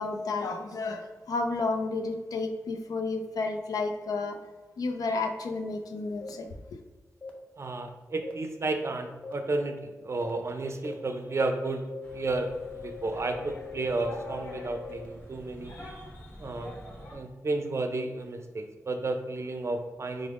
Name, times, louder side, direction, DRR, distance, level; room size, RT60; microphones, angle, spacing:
voice 1, 0.0-4.4 4.8-6.5, left 3 dB, 85° left, 5 dB, 0.4 m, -31 dB
sound 1, 6.2-6.3 7.2-7.3 8.2-8.3 9.2-9.3 10.2-10.3 10.8-10.9 11.4-11.5 11.9-15.1, left 7 dB, 20° left, 0.6 m, -42 dB
voice 2, 7.6-11.9 12.1-12.5 12.8-15.7 16.4-16.7 17.1-20.3, right 2 dB, 45° right, 5 dB, 0.4 m, -32 dB
sound 2, 12.0-17.2, left 1 dB, 40° left, 1.1 m, -46 dB
3.7 x 3.4 x 2.4 m, 1.3 s
cardioid pair, 60°, 6 cm